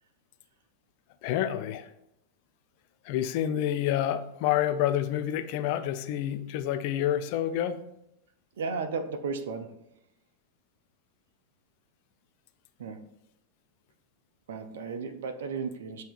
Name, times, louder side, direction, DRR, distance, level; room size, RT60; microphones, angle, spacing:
voice 1, 1.2-1.9 3.0-7.8, left 11 dB, 45° left, 9 dB, 0.4 m, -28 dB
voice 2, 8.6-9.7 12.8-13.0 14.5-16.0, right 4 dB, 60° right, 8 dB, 0.4 m, -34 dB
7.5 x 2.7 x 2.4 m, 0.83 s
figure-of-eight pair, 90°, 0 cm